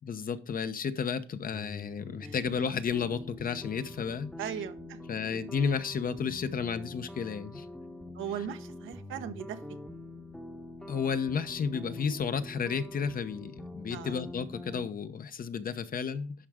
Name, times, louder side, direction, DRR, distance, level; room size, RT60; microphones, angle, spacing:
voice 1, 0.1-4.3 5.1-7.7 10.9-16.5, left 6 dB, 45° left, 0.9 m, -32 dB
sound 1, 1.5-14.9, left 1 dB, 5° left, 0.9 m, -45 dB
voice 2, 4.4-5.0 8.1-9.8 13.9-14.2, right 8 dB, 80° right, 1.0 m, -38 dB
11.5 x 4.6 x 3.6 m
cardioid pair, 90°, 20 cm